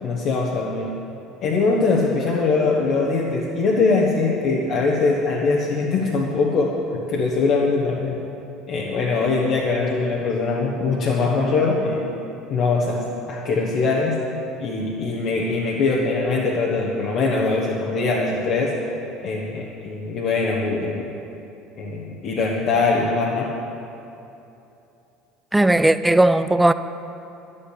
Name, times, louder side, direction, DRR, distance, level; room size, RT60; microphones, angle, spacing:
voice 1, 0.0-0.9 1.4-8.2 8.7-12.1 12.5-14.2 14.6-18.7 19.2-21.1 21.8-23.5, left 3 dB, 50° left, -3 dB, 1.4 m, -22 dB
voice 2, 25.5-26.7, right 1 dB, 10° right, 13 dB, 0.5 m, -16 dB
11.5 x 8.8 x 8.5 m, 2.8 s
figure-of-eight pair, 65°, 0 cm